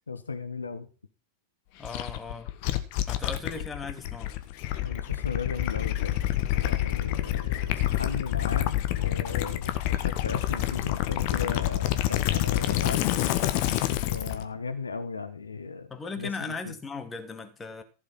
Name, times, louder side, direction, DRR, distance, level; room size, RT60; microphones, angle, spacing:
voice 1, 0.1-0.9 4.8-6.2 6.5-13.1 14.1-15.9 16.2-16.7, left 4 dB, 80° left, 1.3 m, -36 dB
Gurgling / Liquid, 1.8-14.4, left 14 dB, 50° left, 1.5 m, -28 dB
voice 2, 1.8-2.5 3.1-4.3 15.9-17.8, left 4 dB, 15° left, 2.1 m, -37 dB
15.0 x 7.0 x 5.5 m
figure-of-eight pair, 90°, 0 cm